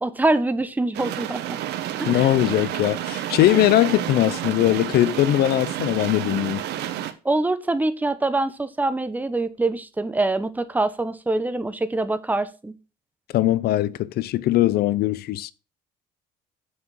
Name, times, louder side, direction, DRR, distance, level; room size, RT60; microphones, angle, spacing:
voice 1, 0.0-1.6 2.0-2.3 7.2-12.7, right 2 dB, 10° right, 0.9 m, -24 dB
sound 1, 0.9-7.1, right 12 dB, 80° right, 1.0 m, -30 dB
voice 2, 2.1-6.6 13.3-15.5, left 14 dB, 70° left, 0.6 m, -20 dB
7.2 x 6.3 x 5.5 m
cardioid pair, 110°, 17 cm